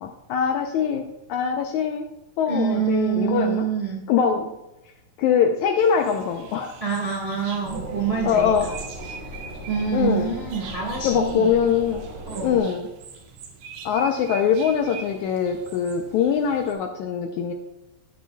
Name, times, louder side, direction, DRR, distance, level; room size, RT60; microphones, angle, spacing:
voice 1, 0.0-2.1 2.4-3.7 4.1-4.5 5.2-6.7 8.2-8.7 9.9-10.3 11.0-12.0 12.4-12.9 13.9-17.5, left 7 dB, 80° left, 4 dB, 1.8 m, -22 dB
voice 2, 2.5-4.0 6.8-8.7 9.3-9.4 9.7-11.5 12.3-12.6, right 6 dB, 45° right, -3 dB, 0.7 m, -26 dB
sound 1, 5.8-16.7, right 5 dB, 75° right, 2.6 m, -43 dB
sound 2, 7.6-12.6, equal, 20° right, 2.3 m, -37 dB
14.5 x 7.8 x 2.3 m, 0.97 s
omnidirectional pair, 3.9 m